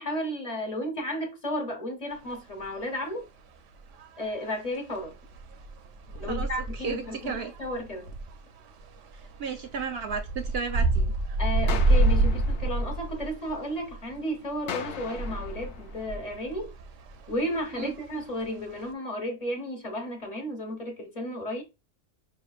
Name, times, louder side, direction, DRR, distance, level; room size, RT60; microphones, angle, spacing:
voice 1, 0.0-3.2 4.2-5.1 6.1-8.1 11.4-16.7 17.3-21.6, equal, 35° left, 1.0 m, -33 dB
sound 1, 2.2-2.3 2.6-2.9 3.9-4.5 5.0-14.2 14.4-18.9, right 2 dB, 85° right, 1.0 m, -28 dB
voice 2, 6.3-7.5 9.4-11.1 17.7-17.9, right 5 dB, 65° right, 0.7 m, -34 dB
sound 2, 11.7-13.7 14.7-16.7, left 8 dB, 70° left, 0.8 m, -40 dB
5.3 x 3.2 x 2.3 m
omnidirectional pair, 1.2 m